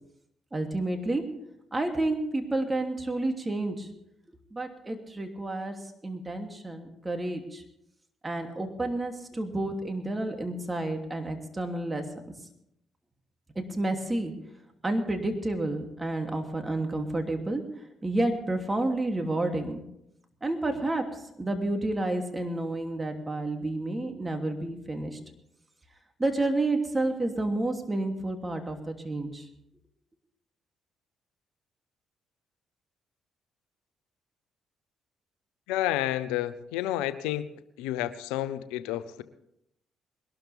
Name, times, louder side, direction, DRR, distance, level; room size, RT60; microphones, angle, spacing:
voice 1, 0.5-1.3 1.7-3.9 4.5-7.6 8.2-12.2 13.5-14.3 14.8-17.6 18.0-19.8 20.4-25.2 26.2-29.5, right 2 dB, 20° right, 4 dB, 2.9 m, -30 dB
voice 2, 35.7-37.5 37.8-39.2, left 13 dB, 80° left, 15 dB, 0.7 m, -30 dB
21.5 x 12.5 x 3.6 m, 0.78 s
hypercardioid pair, 50°, 0 cm